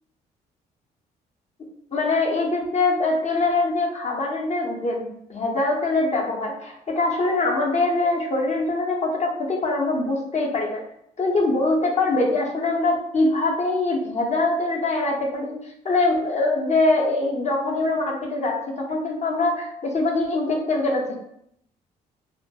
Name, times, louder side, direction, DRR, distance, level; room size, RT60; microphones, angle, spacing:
voice 1, 1.9-10.8 11.2-21.1, left 2 dB, 35° left, -1 dB, 0.7 m, -23 dB
2.2 x 2.1 x 2.7 m, 0.75 s
hypercardioid pair, 50°, 20 cm